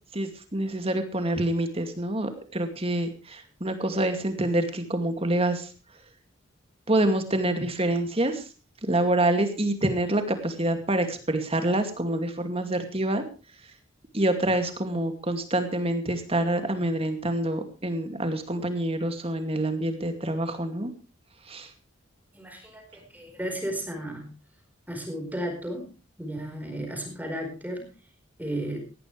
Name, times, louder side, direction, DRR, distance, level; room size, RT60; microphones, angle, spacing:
voice 1, 0.1-5.7 6.9-8.4 8.9-13.2 14.1-20.9 21.5-21.7, right 1 dB, 30° right, 7 dB, 2.4 m, -26 dB
voice 2, 22.3-24.3 24.9-25.9 26.2-27.9 28.4-28.8, right 1 dB, 10° right, 3 dB, 4.6 m, -34 dB
18.5 x 15.0 x 3.3 m, 0.32 s
head